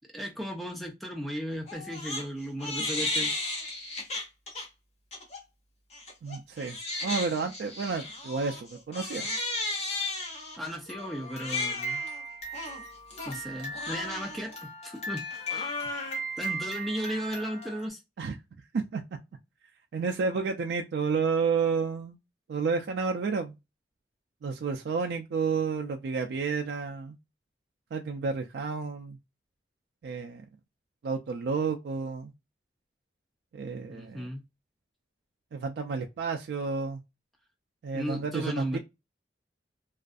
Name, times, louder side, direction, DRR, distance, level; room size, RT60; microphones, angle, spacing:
voice 1, 0.1-3.3 10.6-12.0 13.3-15.2 15.5-15.8 16.4-18.0 33.9-34.4 37.9-38.8, equal, ahead, 0.4 m, -35 dB
Crying sobbing, 1.7-2.2 2.6-4.6 5.1-5.4 5.9-17.9, left 1 dB, 35° left, 0.9 m, -35 dB
voice 2, 6.2-6.8 7.0-9.3 18.2-18.4 18.7-19.0 19.9-22.2 22.5-23.6 24.4-27.1 27.9-29.2 30.0-30.4 31.0-32.3 33.5-34.3 35.5-37.0 37.8-38.8, right 5 dB, 70° right, 0.3 m, -30 dB
2.4 x 2.3 x 2.4 m
head